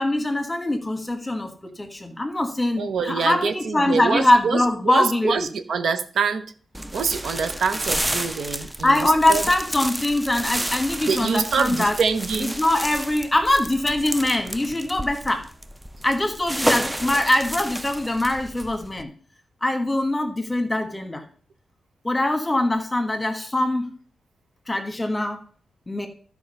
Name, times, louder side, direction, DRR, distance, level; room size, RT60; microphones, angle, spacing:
voice 1, 0.0-5.5 8.8-12.0 12.4-15.4 16.0-19.1 19.6-21.2 22.0-23.9 24.7-25.4 25.9-26.1, left 1 dB, 15° left, 6 dB, 1.3 m, -22 dB
voice 2, 2.8-6.4 6.9-9.4 11.0-12.5, right 5 dB, 70° right, 9 dB, 0.9 m, -25 dB
sound 1, 6.7-19.0, right 1 dB, 10° right, 0.4 m, -30 dB
12.5 x 4.7 x 5.5 m, 0.43 s
wide cardioid pair, 145°, 0 cm